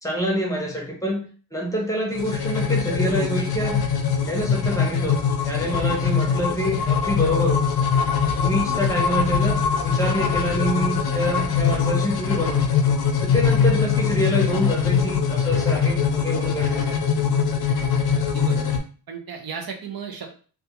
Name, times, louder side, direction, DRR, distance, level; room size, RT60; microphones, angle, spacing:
voice 1, 0.0-3.8 4.3-7.6 8.3-12.7 13.2-17.0, equal, 10° left, -2 dB, 0.7 m, -26 dB
sound 1, 2.1-18.8, left 6 dB, 75° left, 0.5 m, -22 dB
voice 2, 8.6-8.9 18.2-18.8 19.1-20.3, right 6 dB, 70° right, 3 dB, 0.6 m, -36 dB
2.4 x 2.3 x 2.8 m, 0.40 s
wide cardioid pair, 130°, 37 cm